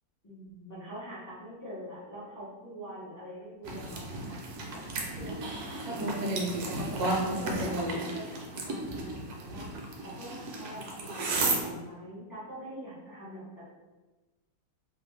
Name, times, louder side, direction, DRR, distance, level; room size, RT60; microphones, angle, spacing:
voice 1, 0.2-4.4 4.7-7.8 8.1-9.7 10.0-13.7, right 1 dB, 30° left, -10 dB, 0.4 m, -44 dB
sound 1, 3.6-11.6, right 2 dB, 75° right, 1.0 m, -33 dB
2.8 x 2.2 x 3.1 m, 1.2 s
omnidirectional pair, 1.7 m